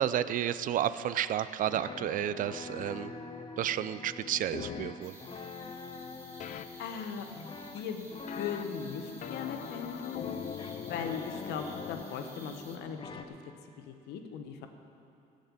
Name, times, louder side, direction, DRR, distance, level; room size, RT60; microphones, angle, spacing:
voice 1, 0.0-3.1 3.6-5.2, right 11 dB, 55° right, 14 dB, 0.5 m, -31 dB
sound 1, 1.6-13.2, left 4 dB, 30° left, 0.8 m, -45 dB
sound 2, 4.5-4.9 6.4-6.6 8.3-8.6 9.2-12.0, left 9 dB, 50° left, 0.4 m, -41 dB
sound 3, 5.0-12.8, right 1 dB, 15° right, 2.2 m, -53 dB
voice 2, 6.4-13.2 13.8-14.7, left 6 dB, 80° left, 6 dB, 1.1 m, -39 dB
14.5 x 6.6 x 8.4 m, 2.6 s
cardioid pair, 110°, 17 cm